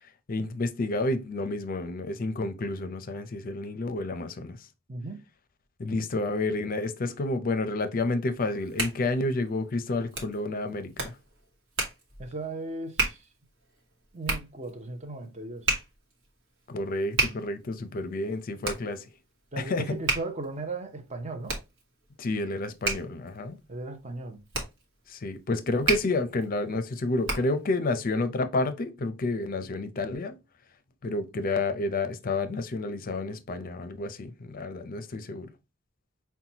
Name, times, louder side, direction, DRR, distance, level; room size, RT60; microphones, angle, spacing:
voice 1, 0.3-4.7 5.8-11.2 16.7-19.1 19.6-19.9 22.2-23.6 25.1-30.4 31.0-35.5, left 2 dB, 40° left, 0.5 m, -30 dB
voice 2, 4.9-5.2 12.2-13.2 14.1-15.7 19.5-21.6 23.7-24.4, right 3 dB, 35° right, 0.7 m, -36 dB
Hands, 8.4-27.7, right 3 dB, 60° right, 1.2 m, -34 dB
5.7 x 2.2 x 2.8 m
head